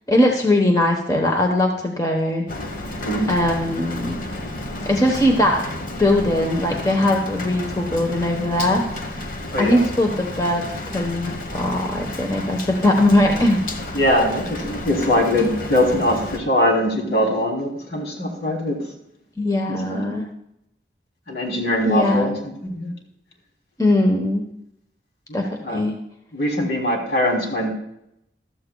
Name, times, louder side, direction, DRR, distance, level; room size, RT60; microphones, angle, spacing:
voice 1, 0.1-2.5 3.3-4.2 4.8-5.6 6.0-8.8 9.6-13.6 19.4-20.3 21.8-22.4 23.8-24.4 25.3-25.9, left 1 dB, 20° left, 1 dB, 1.1 m, -20 dB
Rain, 2.5-16.4, left 1 dB, 50° left, 1.2 m, -32 dB
voice 2, 3.0-3.3 9.5-9.9 13.9-18.8 19.7-20.0 21.3-22.3 22.6-22.9 25.3-25.4 25.6-25.8 26.3-27.7, left 1 dB, 70° left, 0 dB, 3.2 m, -21 dB
15.0 x 13.0 x 2.3 m, 0.80 s
head